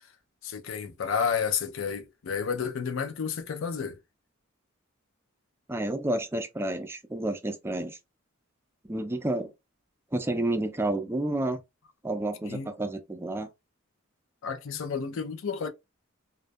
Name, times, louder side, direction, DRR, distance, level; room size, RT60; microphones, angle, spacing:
voice 1, 0.4-4.0 12.4-12.7 14.4-15.7, left 6 dB, 65° left, 0.4 m, -31 dB
voice 2, 5.7-8.0 8.9-9.5 10.1-11.6 12.0-13.5, right 1 dB, 10° right, 0.3 m, -30 dB
2.2 x 2.2 x 2.5 m
head